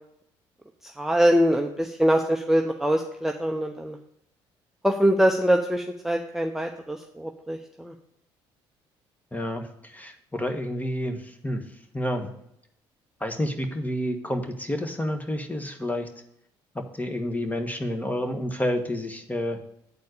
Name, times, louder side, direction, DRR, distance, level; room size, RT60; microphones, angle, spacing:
voice 1, 1.0-4.0 4.8-7.9, equal, 5° right, 2 dB, 0.9 m, -23 dB
voice 2, 9.3-11.6 11.9-12.3 13.2-16.1 16.7-19.6, left 1 dB, 15° left, 6 dB, 1.5 m, -29 dB
9.6 x 4.2 x 6.6 m, 0.75 s
hypercardioid pair, 60°, 12 cm